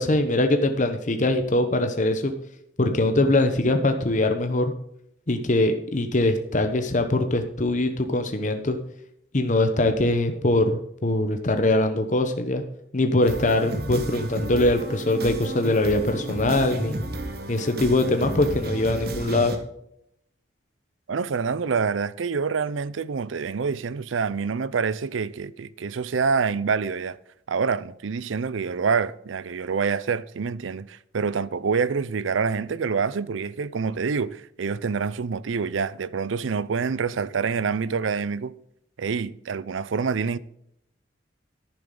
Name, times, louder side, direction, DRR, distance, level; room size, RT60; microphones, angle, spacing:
voice 1, 0.0-2.3 2.8-4.7 5.3-8.8 9.3-12.6 12.9-16.9 17.5-19.5, left 2 dB, 40° left, 0.9 m, -22 dB
sound 1, 13.2-19.6, right 1 dB, 55° right, 1.4 m, -32 dB
voice 2, 21.1-27.2 27.5-38.5 39.0-40.4, right 5 dB, 85° right, 0.5 m, -26 dB
10.5 x 10.5 x 3.8 m
head